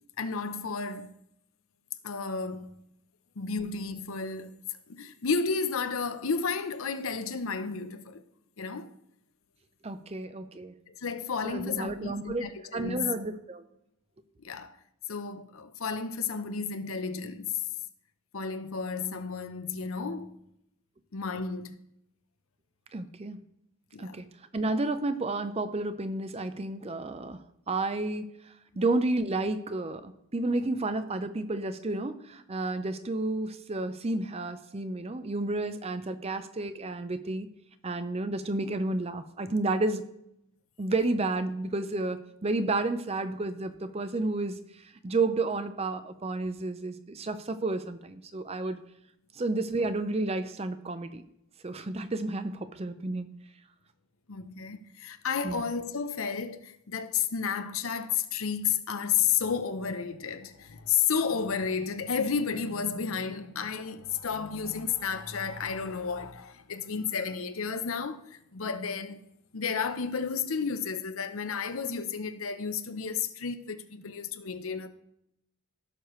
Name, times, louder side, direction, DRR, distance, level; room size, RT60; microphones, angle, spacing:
voice 1, 0.2-1.1 2.0-2.7 3.4-4.5 4.9-8.2 8.6-8.9 10.9-13.1 14.4-14.8 15.1-17.6 18.3-20.3 21.1-21.7 23.9-24.2 54.3-69.2 69.5-74.9, left 6 dB, 70° left, 0.7 m, -32 dB
voice 2, 9.8-10.7 11.4-13.7 22.9-23.4 24.0-24.3 24.5-37.5 37.8-40.1 40.8-48.8 49.3-51.2 51.6-53.3 55.4-55.6, right 2 dB, 30° right, 0.5 m, -31 dB
16.0 x 6.5 x 3.1 m
head